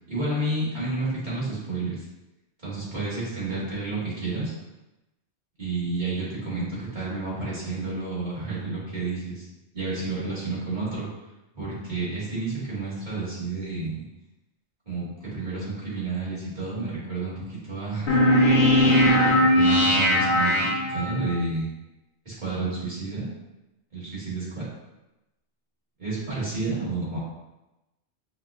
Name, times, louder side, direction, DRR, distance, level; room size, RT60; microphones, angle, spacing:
voice 1, 0.1-2.0 2.6-4.5 5.6-9.5 9.7-11.0 11.5-14.0 14.8-18.2 18.5-21.7 22.2-23.3 23.9-24.6 26.0-27.2, right 3 dB, 40° right, -9 dB, 1.7 m, -30 dB
sound 1, 18.1-21.4, equal, 50° left, 0.9 m, -19 dB
5.7 x 2.1 x 2.3 m, 0.98 s
omnidirectional pair, 1.2 m